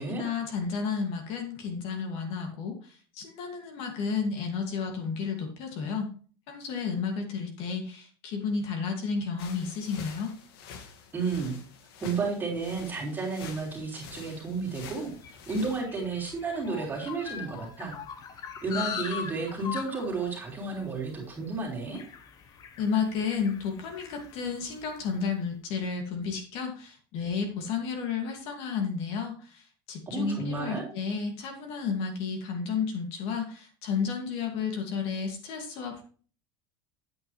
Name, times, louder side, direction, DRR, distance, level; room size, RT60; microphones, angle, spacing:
voice 1, 0.0-6.1 6.5-10.3 22.8-36.0, left 5 dB, 50° left, 3 dB, 2.3 m, -32 dB
sound 1, 9.4-15.8, left 6 dB, 75° left, 2.0 m, -47 dB
voice 2, 11.1-11.6 12.0-17.9 18.6-22.0 30.1-30.8, right 4 dB, 15° right, -3 dB, 3.5 m, -32 dB
sound 2, 14.5-25.1, left 7 dB, 30° left, 1.1 m, -42 dB
8.9 x 8.7 x 3.3 m, 0.41 s
supercardioid pair, 150°, 12 cm